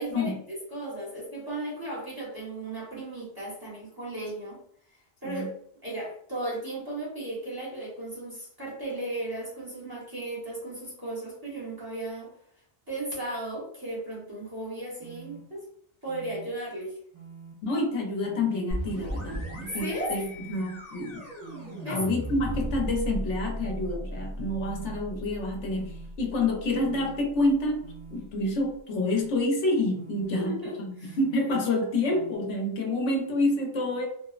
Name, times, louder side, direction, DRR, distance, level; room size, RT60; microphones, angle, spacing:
voice 1, 0.0-4.6 4.9-5.5 5.8-12.3 12.9-15.7 16.0-17.0 19.8-20.3 21.8-22.0 30.3-31.2, right 1 dB, 20° right, -7 dB, 0.9 m, -35 dB
sound 1, 15.0-15.4 16.1-16.5 17.1-17.5 18.2-18.6 19.3-19.7 20.3-20.7 21.4-21.8 22.5-22.9 23.5-23.9 24.6-25.0 25.7-26.1 26.7-27.1 27.8-28.2 28.9-29.3 29.9-30.4 31.0-31.4 32.1-32.4, right 6 dB, 60° right, 1.3 m, -46 dB
voice 2, 17.6-21.2 21.9-25.9 26.2-27.8 28.1-34.1, left 2 dB, 90° left, 1 dB, 1.0 m, -28 dB
sound 2, 18.7-28.3, equal, 15° left, 0.7 m, -37 dB
3.0 x 2.0 x 2.3 m, 0.65 s
omnidirectional pair, 1.2 m